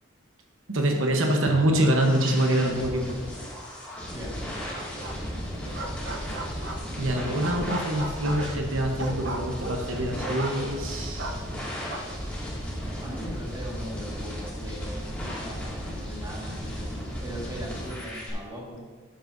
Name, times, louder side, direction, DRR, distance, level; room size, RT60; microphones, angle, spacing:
voice 1, 0.7-3.2 7.0-11.4, right 1 dB, 80° right, 2 dB, 1.1 m, -25 dB
sound 1, 1.6-18.3, equal, 5° left, 2.2 m, -35 dB
sound 2, 4.7-5.3 5.6-7.0 7.4-10.9 11.2-12.0, right 2 dB, 60° right, 0.9 m, -36 dB
voice 2, 7.1-7.7 13.0-16.9 17.2-18.8, equal, 20° right, -4 dB, 1.8 m, -39 dB
12.0 x 8.8 x 2.7 m, 1.5 s
head